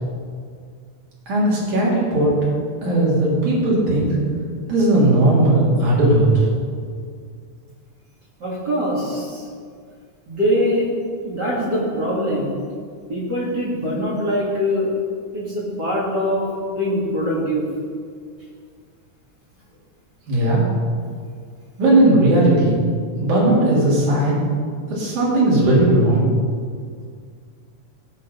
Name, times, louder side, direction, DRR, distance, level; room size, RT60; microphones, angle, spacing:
voice 1, 1.3-2.3 2.8-4.2 4.7-6.4 20.3-20.6 21.8-22.8 23.2-24.5 24.9-26.3, right 1 dB, 80° right, -6 dB, 4.7 m, -17 dB
voice 2, 8.4-9.5 10.3-10.9 11.2-12.5 13.1-14.9 15.3-16.5 16.8-17.7, equal, 35° right, -6 dB, 3.0 m, -23 dB
16.5 x 6.5 x 5.4 m, 2.1 s
omnidirectional pair, 3.5 m